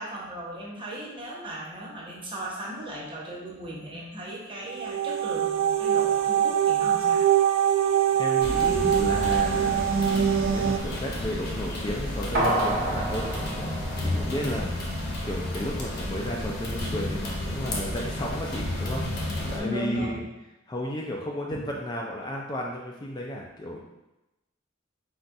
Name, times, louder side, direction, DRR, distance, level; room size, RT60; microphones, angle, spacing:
voice 1, 0.0-7.2 14.3-14.8 15.0-15.1 19.5-20.2 21.5-21.7, equal, 25° right, -4 dB, 0.9 m, -37 dB
sound 1, 4.7-10.8, right 9 dB, 85° right, 0.3 m, -23 dB
voice 2, 8.1-9.9 10.4-13.3 13.6-13.7 14.0-14.7 15.2-20.2 20.7-23.8, equal, 20° left, -1 dB, 0.4 m, -33 dB
sound 2, 8.4-19.6, left 1 dB, 55° left, 0.9 m, -31 dB
sound 3, 12.3-14.9 15.3-15.4, right 1 dB, 50° right, 0.9 m, -29 dB
3.9 x 2.5 x 4.5 m, 0.98 s
head